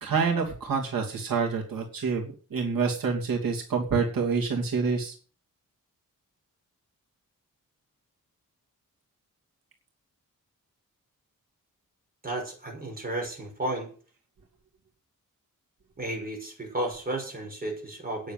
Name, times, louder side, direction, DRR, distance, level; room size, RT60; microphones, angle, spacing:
voice 1, 0.0-5.1, right 5 dB, 85° right, 0 dB, 3.0 m, -27 dB
voice 2, 12.2-13.9 16.0-18.3, right 1 dB, 25° right, 1 dB, 6.1 m, -33 dB
10.0 x 7.7 x 9.1 m, 0.39 s
wide cardioid pair, 135°, 33 cm